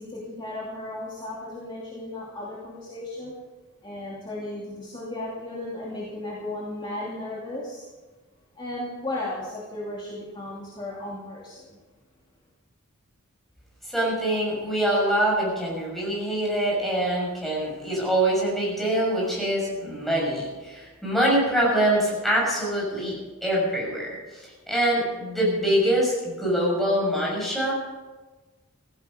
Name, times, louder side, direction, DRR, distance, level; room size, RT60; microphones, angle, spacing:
voice 1, 0.0-3.3 3.8-7.8 8.5-11.8, left 1 dB, 20° left, -6 dB, 2.8 m, -35 dB
voice 2, 13.8-27.7, right 1 dB, ahead, -4 dB, 6.7 m, -24 dB
16.5 x 15.0 x 5.2 m, 1.2 s
head